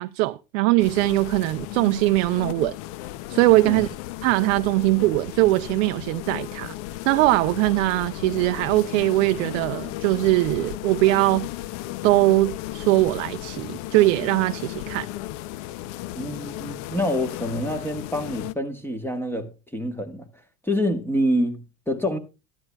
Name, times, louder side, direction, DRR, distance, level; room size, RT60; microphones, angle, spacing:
voice 1, 0.0-2.7 3.3-3.9 4.2-6.7 7.1-11.5 12.0-15.1, right 19 dB, 60° right, 0.5 m, -21 dB
sound 1, 0.8-18.5, left 15 dB, 55° left, 0.6 m, -35 dB
voice 2, 16.2-20.3 20.6-22.2, equal, 5° left, 1.3 m, -26 dB
13.0 x 10.5 x 2.3 m
hypercardioid pair, 90°, 42 cm